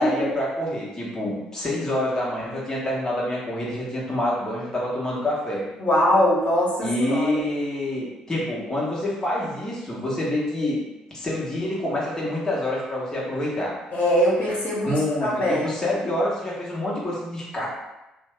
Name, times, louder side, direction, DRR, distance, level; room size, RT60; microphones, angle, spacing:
voice 1, 0.0-5.6 6.8-10.8 11.1-13.8 14.9-17.7, left 1 dB, 20° left, -6 dB, 1.1 m, -27 dB
voice 2, 5.8-7.4 13.9-15.8, equal, 50° left, -6 dB, 1.1 m, -22 dB
2.6 x 2.1 x 3.4 m, 0.98 s
hypercardioid pair, 50°, 3 cm